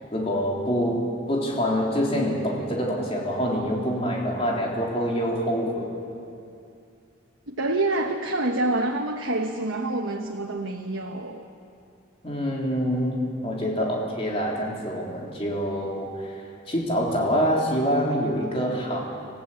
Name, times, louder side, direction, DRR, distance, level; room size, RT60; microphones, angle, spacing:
voice 1, 0.1-5.9 12.2-16.4 16.7-19.0, equal, 30° left, -2 dB, 3.7 m, -26 dB
voice 2, 7.5-11.4, right 2 dB, 85° right, 2 dB, 1.3 m, -27 dB
27.0 x 15.5 x 8.7 m, 2.5 s
head